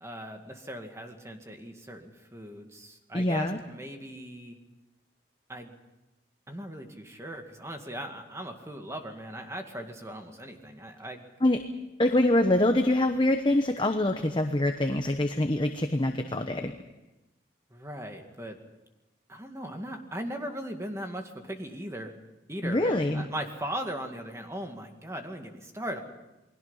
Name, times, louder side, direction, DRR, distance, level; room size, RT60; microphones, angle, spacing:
voice 1, 0.0-4.6 5.5-5.7 6.5-11.2 17.7-18.6 19.3-22.1 22.5-26.0, equal, 15° right, 4 dB, 2.0 m, -38 dB
voice 2, 3.1-3.6 11.4-11.6 12.0-16.7 22.6-23.3, left 1 dB, 25° left, 6 dB, 1.0 m, -25 dB
29.0 x 21.0 x 5.7 m, 0.99 s
head